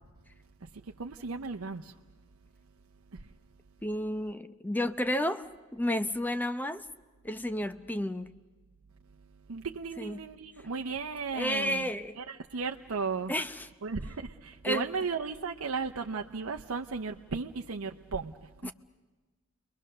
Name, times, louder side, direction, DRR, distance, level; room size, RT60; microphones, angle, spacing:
voice 1, 0.6-1.9 3.1-3.3 9.5-11.9 12.2-13.3 13.8-18.7, right 4 dB, 85° right, 0.7 m, -35 dB
voice 2, 3.8-6.8 7.2-8.3 10.0-10.2 11.3-12.2 13.3-13.7 14.6-14.9 18.6-18.7, left 1 dB, 10° left, 0.7 m, -31 dB
29.5 x 22.0 x 6.6 m
head